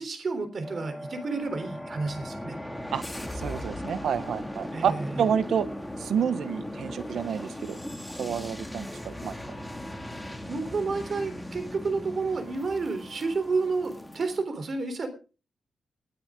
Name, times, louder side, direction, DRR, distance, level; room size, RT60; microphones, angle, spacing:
voice 1, 0.0-2.6 4.7-5.3 10.2-15.1, right 4 dB, 45° right, 9 dB, 3.6 m, -30 dB
sound 1, 0.6-14.4, left 1 dB, 5° left, 2.2 m, -38 dB
voice 2, 3.3-5.7 6.0-7.8 8.2-9.4, right 8 dB, 75° right, 14 dB, 1.0 m, -29 dB
20.0 x 9.4 x 3.7 m, 0.34 s
wide cardioid pair, 120°, 0 cm